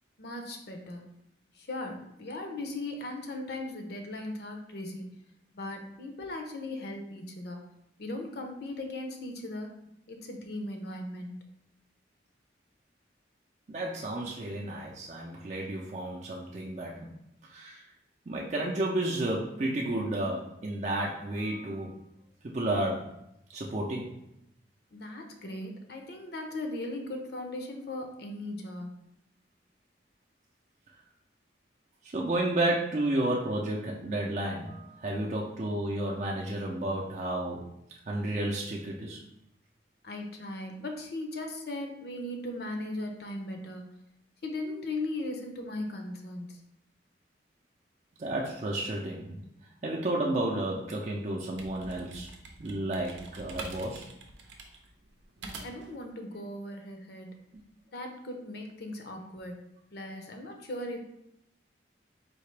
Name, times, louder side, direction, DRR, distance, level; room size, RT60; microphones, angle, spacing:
voice 1, 0.2-1.0 1.6-5.1 5.5-7.6 8.0-9.7 10.1-11.4 24.9-28.9 40.0-43.8 44.4-46.6 55.6-57.4 57.9-59.6 59.9-61.0, left 1 dB, 60° left, 4 dB, 0.6 m, -38 dB
voice 2, 13.7-17.1 17.4-17.8 18.3-21.9 22.4-23.0 23.5-24.2 32.1-37.6 38.1-39.2 48.2-49.4 49.8-52.3 52.6-54.1, right 1 dB, 40° right, -3 dB, 0.5 m, -32 dB
sound 1, 51.6-56.0, right 2 dB, 85° right, 0.6 m, -45 dB
4.3 x 2.8 x 3.2 m, 0.81 s
head